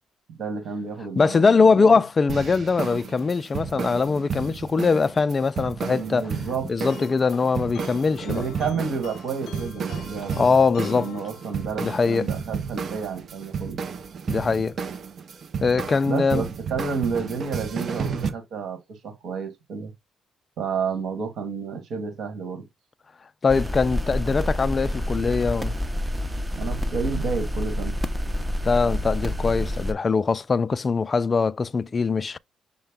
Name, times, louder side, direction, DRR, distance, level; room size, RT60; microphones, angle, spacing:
voice 1, 0.3-2.0 5.9-6.7 8.2-10.5 10.9-13.8 16.1-19.9 20.6-22.7 26.5-28.0, right 5 dB, 70° right, 1.8 m, -31 dB
voice 2, 1.2-6.3 6.6-8.4 10.4-11.1 11.8-12.3 14.3-14.7 15.6-16.4 23.4-25.7 28.6-32.4, left 4 dB, 35° left, 0.3 m, -22 dB
sound 1, 2.3-18.3, right 6 dB, 50° right, 0.7 m, -32 dB
sound 2, 6.9-12.0, left 7 dB, 80° left, 0.7 m, -43 dB
sound 3, 23.5-29.9, equal, 15° right, 0.7 m, -28 dB
6.4 x 2.2 x 3.7 m
cardioid pair, 90°, 0 cm